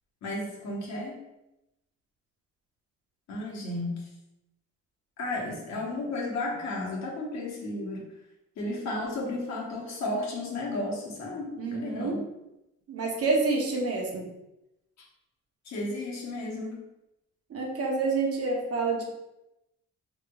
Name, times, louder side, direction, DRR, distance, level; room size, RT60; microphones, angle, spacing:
voice 1, 0.2-1.2 3.3-4.1 5.2-8.1 8.6-12.2 15.6-16.8, left 2 dB, 65° left, -3 dB, 1.1 m, -33 dB
voice 2, 11.6-12.2 12.9-14.2 17.5-19.0, right 3 dB, 50° right, 0 dB, 0.8 m, -28 dB
3.1 x 3.1 x 2.3 m, 0.91 s
cardioid pair, 90°, 30 cm